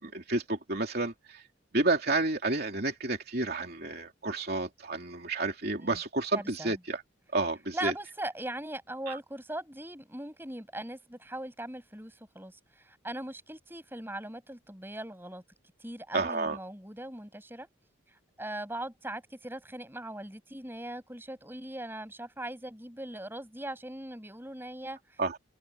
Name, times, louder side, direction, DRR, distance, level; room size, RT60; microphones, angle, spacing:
voice 1, 0.0-1.4 1.7-7.0 7.3-7.9 9.1-9.2 16.1-16.6 25.2-25.4, right 2 dB, 50° right, 3.0 m, -30 dB
voice 2, 6.3-6.8 7.7-15.4 15.8-17.7 18.1-25.2, right 1 dB, 10° right, 7.0 m, -40 dB
head